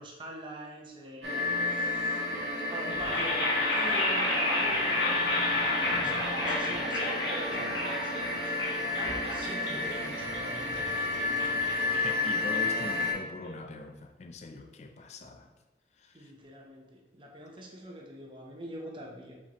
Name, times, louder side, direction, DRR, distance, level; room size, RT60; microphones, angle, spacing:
voice 1, 0.0-2.2 2.7-10.8 16.1-19.4, right 1 dB, 25° right, 0.7 m, -45 dB
sound 1, 1.2-13.1, left 2 dB, 75° right, 0.9 m, -31 dB
sound 2, 2.9-12.9, left 1 dB, 90° left, 1.3 m, -32 dB
voice 2, 11.5-15.5 16.0-16.3, left 2 dB, 40° left, 0.4 m, -43 dB
4.9 x 3.5 x 2.9 m
head